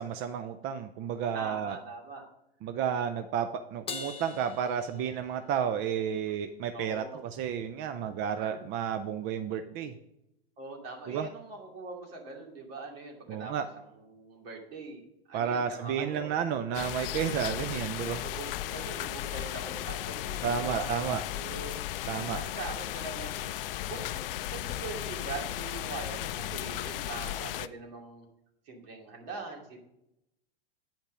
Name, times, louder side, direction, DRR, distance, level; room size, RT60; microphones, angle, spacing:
voice 1, 0.0-1.8 2.6-9.9 11.1-11.3 13.3-13.7 15.3-18.2 20.4-21.2 22.1-22.4, right 8 dB, 35° right, 9 dB, 0.5 m, -32 dB
voice 2, 1.3-2.3 6.7-7.2 7.9-8.0 8.3-8.6 10.6-16.4 17.7-20.9 21.3-21.8 22.3-28.3 28.6-29.8, right 3 dB, 65° right, 0 dB, 2.7 m, -42 dB
Crash cymbal, 3.9-5.6, left 5 dB, 20° left, 0.8 m, -42 dB
sound 1, 16.7-27.7, left 13 dB, 60° left, 0.5 m, -35 dB
8.8 x 5.3 x 5.1 m, 0.83 s
hypercardioid pair, 105°, 32 cm